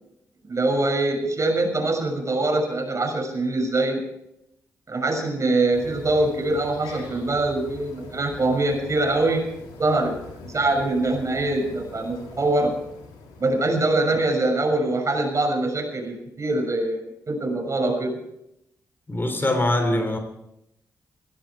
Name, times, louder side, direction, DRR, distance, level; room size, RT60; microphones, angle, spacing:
voice 1, 0.4-4.0 4.9-9.5 9.8-10.2 10.5-12.7 13.4-18.1, right 2 dB, 45° right, 3 dB, 6.2 m, -23 dB
sound 1, 5.7-14.1, left 4 dB, 90° left, 3.2 m, -43 dB
voice 2, 19.1-20.2, left 1 dB, 30° left, 7 dB, 3.4 m, -22 dB
16.5 x 16.5 x 4.8 m, 0.80 s
supercardioid pair, 45°, 8 cm